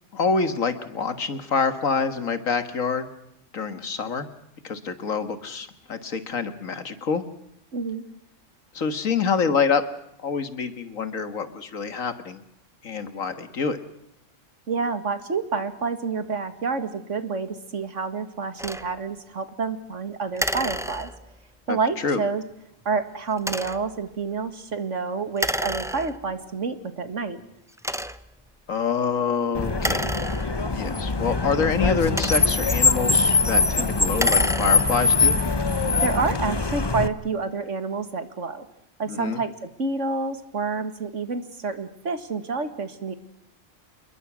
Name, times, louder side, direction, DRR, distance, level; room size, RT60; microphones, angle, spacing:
voice 1, 0.1-3.1 3.5-4.3 4.6-7.2 8.7-9.8 10.2-12.4 12.8-13.8 21.7-21.8 22.0-22.2 27.9-28.0 28.7-30.1 30.7-35.4 39.1-39.4, left 5 dB, 85° left, 10 dB, 2.1 m, -26 dB
voice 2, 7.7-8.0 14.7-21.1 21.7-22.4 22.9-27.4 36.0-38.7 39.0-43.1, right 4 dB, 65° right, 10 dB, 2.2 m, -28 dB
sound 1, 18.6-18.9 20.4-21.4 23.4-23.9 25.4-26.4 27.1-27.2 27.8-28.4 29.7-30.9 31.8-32.7 34.0-35.1, equal, 5° right, 0.5 m, -30 dB
Car, 29.5-37.1, left 4 dB, 20° left, 0.9 m, -22 dB
28.0 x 21.5 x 6.2 m, 0.81 s
omnidirectional pair, 1.3 m